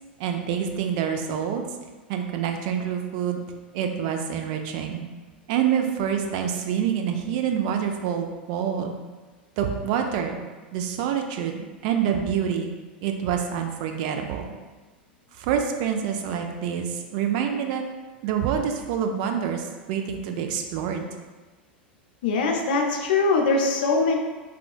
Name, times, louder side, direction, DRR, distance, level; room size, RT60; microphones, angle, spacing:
voice 1, 0.2-1.6 2.1-3.4 3.7-5.0 5.5-8.9 9.6-10.4 10.7-12.7 13.0-14.5 15.4-17.8 18.2-21.0, right 8 dB, 55° right, 4 dB, 0.3 m, -26 dB
voice 2, 22.2-24.2, left 3 dB, 65° left, 2 dB, 0.5 m, -22 dB
3.6 x 2.2 x 2.3 m, 1.3 s
figure-of-eight pair, 85°, 6 cm